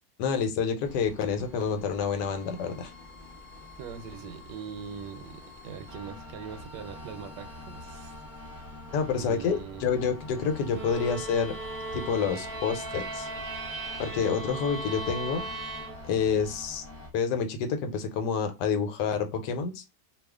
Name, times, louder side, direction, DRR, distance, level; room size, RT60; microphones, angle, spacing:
voice 1, 0.2-2.9 8.9-11.5 11.9-13.3 14.0-15.4 16.1-16.8 17.1-19.8, left 6 dB, 85° left, 1.3 m, -28 dB
sound 1, 0.8-17.1, left 1 dB, 15° right, 0.6 m, -46 dB
voice 2, 3.8-8.1 9.1-9.9, right 7 dB, 90° right, 1.2 m, -41 dB
sound 2, 10.7-16.4, right 2 dB, 45° right, 0.9 m, -37 dB
2.7 x 2.4 x 3.4 m
omnidirectional pair, 1.8 m